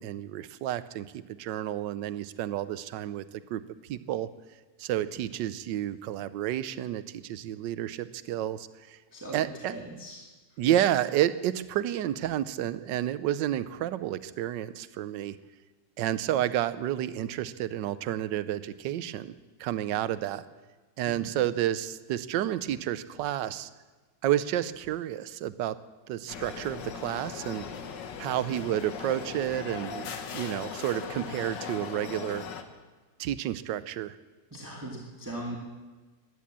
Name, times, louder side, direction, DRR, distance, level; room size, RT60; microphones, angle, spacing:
voice 1, 0.0-3.2 3.5-3.6 3.9-4.3 4.8-9.0 9.3-9.7 10.6-15.4 16.0-19.3 19.6-20.5 21.0-23.7 24.2-25.8 26.1-27.7 28.2-30.1 30.3-32.4 33.2-34.2, right 12 dB, 90° right, 15 dB, 1.3 m, -30 dB
voice 2, 9.1-10.2 21.0-21.3 34.5-35.6, right 1 dB, 10° right, -2 dB, 2.0 m, -39 dB
sound 1, 26.3-32.6, left 6 dB, 85° left, 1.8 m, -39 dB
17.0 x 11.5 x 7.4 m, 1.3 s
omnidirectional pair, 1.9 m